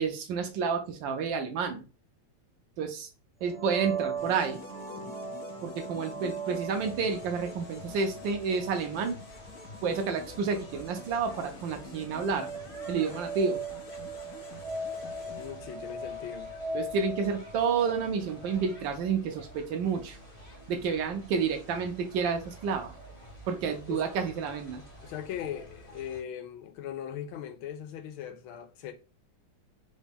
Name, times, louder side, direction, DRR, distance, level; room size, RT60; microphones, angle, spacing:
voice 1, 0.0-1.8 2.8-3.1 3.4-4.6 5.6-9.2 9.8-12.5 12.9-13.6 16.7-20.2 20.7-22.9 23.5-24.8, right 5 dB, 75° right, 1.2 m, -30 dB
sound 1, 3.4-19.1, right 3 dB, 30° right, 0.6 m, -39 dB
sound 2, 4.2-16.2, left 5 dB, 70° left, 0.9 m, -49 dB
sound 3, 6.7-26.2, equal, 25° left, 0.8 m, -50 dB
voice 2, 15.2-16.5 23.9-24.1 25.0-28.9, left 9 dB, 90° left, 1.5 m, -39 dB
3.9 x 2.2 x 3.4 m
omnidirectional pair, 2.3 m